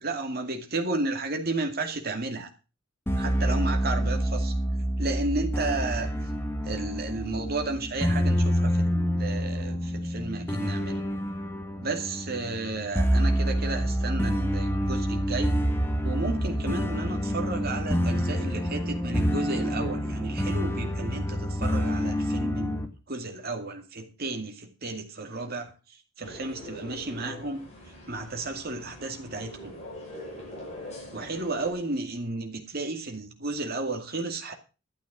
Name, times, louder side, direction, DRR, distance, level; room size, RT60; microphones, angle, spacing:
voice 1, 0.0-2.5 3.1-4.5 5.0-6.3 6.6-11.0 11.8-15.6 16.0-27.6 28.1-29.7 31.1-34.5, right 2 dB, 50° right, 2.4 m, -33 dB
sound 1, 3.1-22.9, equal, 10° left, 1.5 m, -27 dB
sound 2, 26.2-31.7, left 1 dB, 35° left, 6.7 m, -43 dB
12.5 x 8.3 x 6.1 m
head